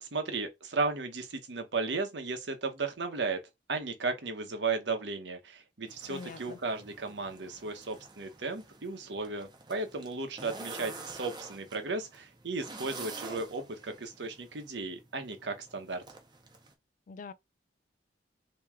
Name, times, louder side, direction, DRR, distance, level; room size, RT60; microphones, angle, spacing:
voice 1, 0.0-3.4 3.7-16.0, right 3 dB, 90° right, 1.0 m, -35 dB
sound 1, 5.9-16.7, right 3 dB, 25° right, 0.8 m, -48 dB
voice 2, 6.1-6.6 17.1-17.3, left 4 dB, 45° left, 0.3 m, -44 dB
3.1 x 2.9 x 3.5 m
head